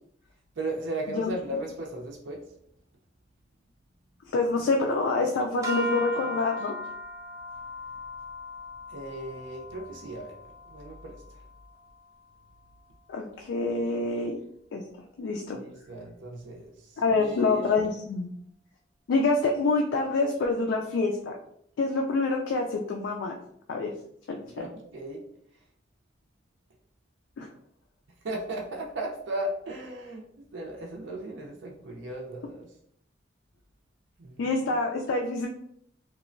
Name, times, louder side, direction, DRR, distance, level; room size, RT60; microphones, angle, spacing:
voice 1, 0.6-2.4 8.9-10.3 10.7-11.2 15.6-16.7 17.1-17.7 24.6-25.2 28.2-30.2 30.5-32.7 34.2-34.4, right 1 dB, 85° right, -1 dB, 0.5 m, -36 dB
voice 2, 4.3-6.8 13.1-14.4 14.7-14.8 15.2-15.6 17.0-18.3 19.1-21.4 21.8-23.4 23.7-23.9 24.3-24.7 27.4-27.5 34.4-35.5, left 3 dB, 85° left, 1 dB, 0.3 m, -26 dB
sound 1, 5.6-12.0, left 1 dB, 15° right, 0.4 m, -38 dB
2.9 x 2.1 x 2.5 m, 0.69 s
head